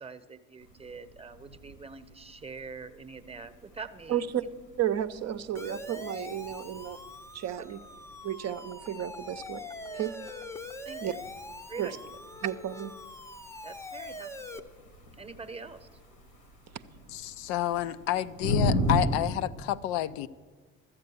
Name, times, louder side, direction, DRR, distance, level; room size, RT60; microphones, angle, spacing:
voice 1, 0.0-4.5 7.6-7.7 10.8-11.2 11.7-12.2 13.6-14.7 15.2-16.0, right 4 dB, 15° right, 0.9 m, -44 dB
sound 1, 0.6-19.2, left 1 dB, 85° left, 1.5 m, -38 dB
voice 2, 4.1-4.4 4.8-7.0 7.3-7.8 8.2-9.6 9.9-10.1 11.0-11.1 11.8-12.0 12.4-12.9, right 10 dB, 45° right, 0.7 m, -32 dB
Siren, 5.6-14.6, left 2 dB, 5° left, 0.6 m, -43 dB
voice 3, 17.1-20.3, left 13 dB, 70° left, 0.5 m, -29 dB
13.0 x 8.2 x 7.0 m
hypercardioid pair, 55°, 39 cm